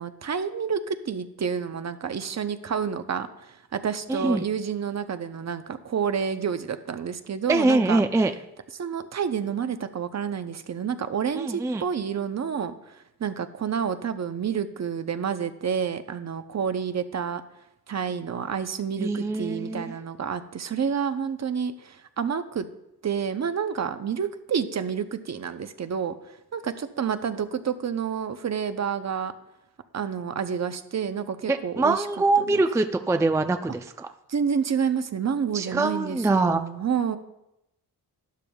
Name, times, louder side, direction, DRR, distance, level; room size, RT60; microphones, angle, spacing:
voice 1, 0.0-8.0 8.7-17.4 17.9-22.7 23.0-26.1 26.5-29.3 29.9-32.1 32.5-32.6 34.3-37.2, right 7 dB, 40° right, 10 dB, 0.7 m, -29 dB
voice 2, 4.1-4.5 7.5-8.3 11.3-11.8 19.0-19.9 31.5-34.1 35.5-36.6, right 2 dB, 10° right, 8 dB, 0.4 m, -24 dB
12.0 x 10.5 x 2.3 m, 0.87 s
cardioid pair, 75°, 40 cm